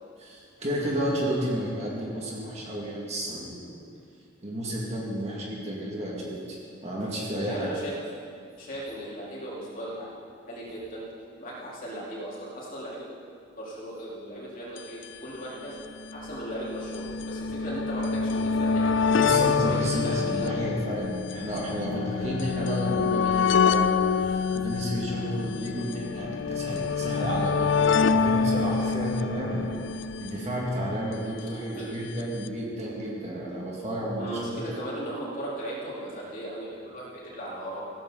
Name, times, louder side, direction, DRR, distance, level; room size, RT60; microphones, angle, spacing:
voice 1, 0.2-3.6 4.4-7.7 19.1-27.7 28.1-29.6 30.2-34.3, right 1 dB, 35° right, -4 dB, 2.4 m, -31 dB
voice 2, 7.4-7.9 8.6-10.1 10.5-11.0 11.4-13.0 13.5-15.7 16.1-19.1 19.4-20.6 29.3-29.6 31.7-31.9 34.2-37.8, right 1 dB, 45° left, -7 dB, 4.1 m, -37 dB
sound 1, 14.8-14.9 15.0-15.1 16.0-31.2 32.2-32.3 32.5-32.6, left 5 dB, 60° left, 0.4 m, -26 dB
16.0 x 14.0 x 4.2 m, 2.3 s
head